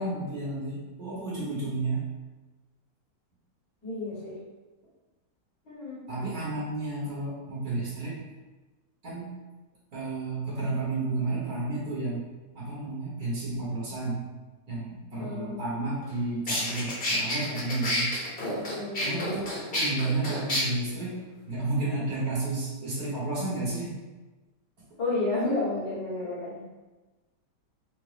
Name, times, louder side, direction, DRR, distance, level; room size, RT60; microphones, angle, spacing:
voice 1, 0.0-2.0 6.1-8.2 9.0-9.3 9.9-12.2 12.5-14.3 14.7-18.1 19.0-21.2 21.5-23.9, right 2 dB, 60° right, -6 dB, 1.7 m, -31 dB
voice 2, 3.8-4.4 5.7-6.0 15.2-15.6 18.2-19.3 25.0-26.6, left 2 dB, 75° left, -8 dB, 2.2 m, -32 dB
sound 1, 16.0-16.1 16.5-20.6, left 1 dB, 40° left, 1.0 m, -29 dB
5.2 x 2.2 x 3.3 m, 1.2 s
omnidirectional pair, 1.9 m